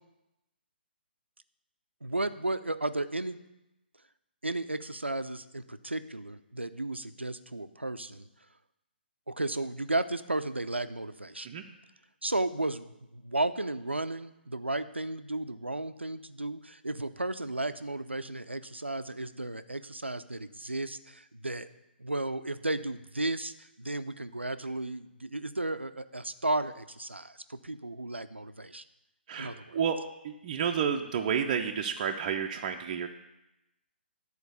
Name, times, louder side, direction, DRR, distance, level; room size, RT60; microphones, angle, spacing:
voice 1, 2.0-3.4 4.4-8.3 9.3-11.5 12.2-21.7 22.0-28.8 29.4-29.8, right 2 dB, 85° right, 11 dB, 0.5 m, -34 dB
voice 2, 29.3-30.0 30.2-33.1, right 7 dB, 35° right, 3 dB, 0.6 m, -30 dB
11.0 x 4.6 x 6.7 m, 0.92 s
figure-of-eight pair, 130°, 6 cm